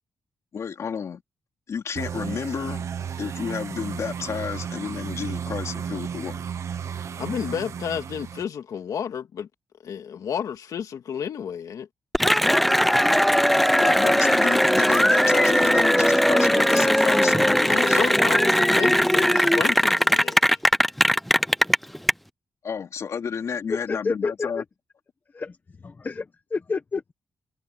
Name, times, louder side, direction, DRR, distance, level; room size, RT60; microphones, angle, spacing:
voice 1, 0.5-1.2 1.7-2.8 3.2-6.4 13.8-18.0 22.6-24.6, left 6 dB, 55° left, 3.0 m, -31 dB
sound 1, 2.0-8.4, right 7 dB, 50° right, 1.2 m, -33 dB
voice 2, 7.2-9.5 9.8-11.9 17.6-20.4, left 8 dB, 70° left, 2.2 m, -31 dB
Cheering / Applause, 12.1-22.1, equal, ahead, 0.5 m, -19 dB
voice 3, 23.7-24.6 25.3-25.6 25.8-27.1, left 4 dB, 30° left, 1.5 m, -29 dB
wide cardioid pair, 150°, 6 cm